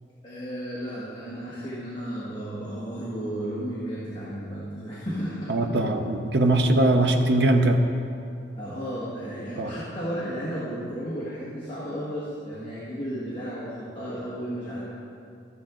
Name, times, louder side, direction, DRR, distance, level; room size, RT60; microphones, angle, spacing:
voice 1, 0.2-5.8 8.6-14.9, equal, 25° left, -9 dB, 1.7 m, -33 dB
voice 2, 5.5-7.8 9.6-9.7, right 1 dB, 65° right, 5 dB, 0.7 m, -21 dB
14.0 x 7.6 x 3.8 m, 2.5 s
head